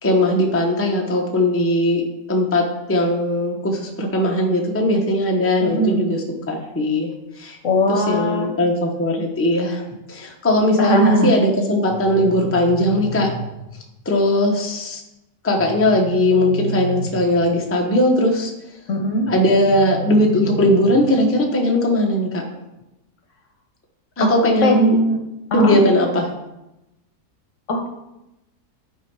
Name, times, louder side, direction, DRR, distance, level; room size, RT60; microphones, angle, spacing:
voice 1, 0.0-7.6 7.9-9.8 10.1-13.3 14.0-15.0 15.4-18.5 19.3-22.4 24.2-25.0 25.5-26.3, left 1 dB, 10° left, 0 dB, 0.8 m, -19 dB
voice 2, 5.6-6.1 7.6-8.5 10.8-11.3 18.9-19.3 24.2-25.2 25.5-25.8 27.7-27.9, equal, 60° left, 3 dB, 1.2 m, -19 dB
sound 1, 11.9-13.9 15.6-17.6 19.3-21.3, right 1 dB, 50° right, 0.9 m, -31 dB
9.2 x 4.6 x 4.7 m, 0.94 s
omnidirectional pair, 1.6 m